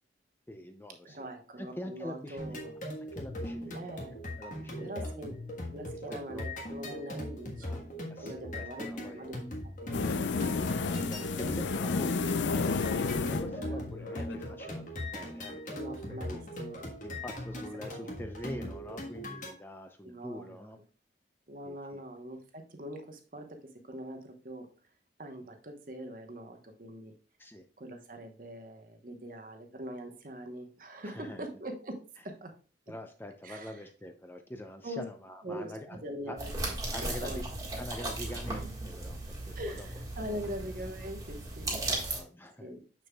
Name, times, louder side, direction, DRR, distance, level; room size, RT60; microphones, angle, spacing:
voice 1, 0.5-1.3 1.6-2.6 3.1-3.8 4.4-5.1 6.1-6.5 7.6-7.8 8.1-9.3 10.1-12.6 13.3-16.4 17.0-20.8 21.6-22.0 27.4-27.6 31.0-31.5 32.9-36.4 36.9-37.4 37.8-39.9 41.8-42.7, left 1 dB, 10° left, 6 dB, 0.5 m, -45 dB
voice 2, 1.0-2.7 3.7-4.1 4.8-5.3 5.7-7.8 8.2-9.4 9.8-10.0 10.3-10.5 13.5-14.2 15.7-16.8 17.9-18.7 20.0-20.6 21.5-23.6 23.9-24.7 25.2-27.1 27.8-32.5 33.4-33.8 34.8-35.0 35.4-36.5 37.0-37.4 39.5-42.3 42.6-42.8, equal, 50° right, 4 dB, 1.0 m, -43 dB
sound 1, 2.4-19.5, left 1 dB, 45° left, 1.4 m, -40 dB
sound 2, 9.9-14.5, left 4 dB, 85° left, 0.5 m, -31 dB
sound 3, 36.4-42.2, right 2 dB, 20° right, 1.6 m, -36 dB
6.6 x 6.5 x 2.3 m, 0.38 s
head